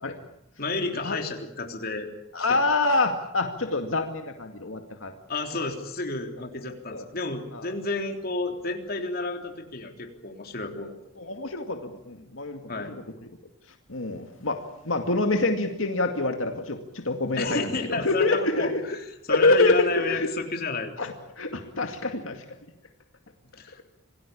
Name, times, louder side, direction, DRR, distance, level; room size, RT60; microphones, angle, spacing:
voice 1, 0.6-2.1 2.5-2.6 5.3-10.9 11.2-11.3 12.7-13.0 17.4-18.7 19.3-20.9 23.6-23.8, left 3 dB, 50° left, 4 dB, 3.5 m, -31 dB
voice 2, 2.3-5.1 6.4-6.5 6.9-7.0 7.5-7.7 11.2-13.0 13.9-18.8 19.3-20.3 21.0-22.4, left 2 dB, 80° left, 5 dB, 2.3 m, -26 dB
27.0 x 18.5 x 8.6 m, 0.78 s
head